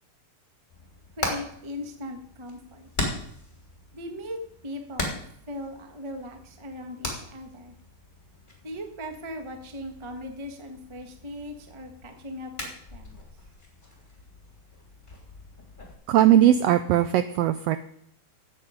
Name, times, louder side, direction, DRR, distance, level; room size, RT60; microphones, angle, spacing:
Hammer, 0.7-15.9, left 1 dB, 15° left, 3.1 m, -39 dB
voice 1, 1.2-2.9 3.9-5.2 5.5-7.7 8.6-13.2, left 1 dB, 20° right, 4 dB, 0.7 m, -39 dB
voice 2, 16.1-17.8, right 12 dB, 80° right, 11 dB, 1.4 m, -19 dB
13.5 x 8.3 x 5.1 m, 0.68 s
omnidirectional pair, 3.3 m